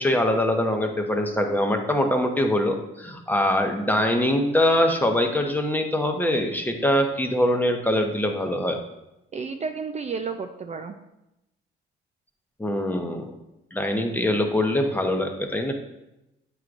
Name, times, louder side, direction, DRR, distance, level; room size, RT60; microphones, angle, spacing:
voice 1, 0.0-8.8 12.6-13.3 13.7-15.7, left 1 dB, 10° left, 4 dB, 0.8 m, -23 dB
voice 2, 9.3-10.9, right 5 dB, 35° right, 6 dB, 0.4 m, -31 dB
8.2 x 4.7 x 2.5 m, 0.90 s
cardioid pair, 90°, 20 cm